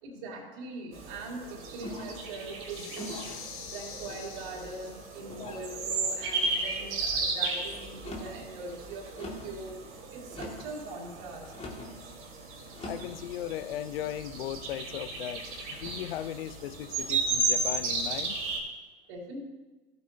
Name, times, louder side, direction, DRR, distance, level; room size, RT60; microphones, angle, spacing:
voice 1, 0.0-3.5 3.7-9.8 10.1-11.5 19.1-19.4, right 3 dB, 60° right, -1 dB, 3.3 m, -42 dB
sound 1, 0.9-18.6, right 3 dB, 45° right, 2.8 m, -35 dB
sound 2, 1.8-2.3 2.9-3.4 4.0-4.6 5.3-5.7 6.4-6.8 7.9-8.4 9.2-9.6 10.3-10.7 11.5-11.9 12.7-13.1, left 1 dB, 20° left, 2.1 m, -42 dB
sound 3, 2.7-5.2, left 6 dB, 45° left, 1.8 m, -45 dB
voice 2, 12.8-18.4, left 11 dB, 75° left, 14 dB, 0.6 m, -37 dB
15.0 x 8.3 x 2.8 m, 1.2 s
hypercardioid pair, 100°, 30 cm